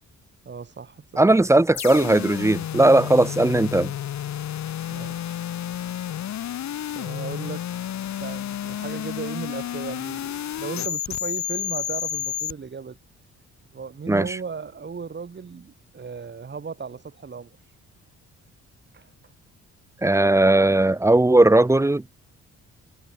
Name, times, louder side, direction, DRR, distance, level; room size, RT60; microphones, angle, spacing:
voice 1, 0.4-1.4 2.8-3.2 4.9-5.4 6.9-7.7 8.2-13.0 13.7-17.6 18.9-19.1, right 5 dB, 35° right, 4.8 m, -36 dB
voice 2, 1.2-3.9 14.1-14.2 20.0-22.0, right 2 dB, 10° right, 0.6 m, -18 dB
sound 1, 1.7-12.5, left 11 dB, 65° left, 2.7 m, -31 dB
cardioid pair, 90°, 30 cm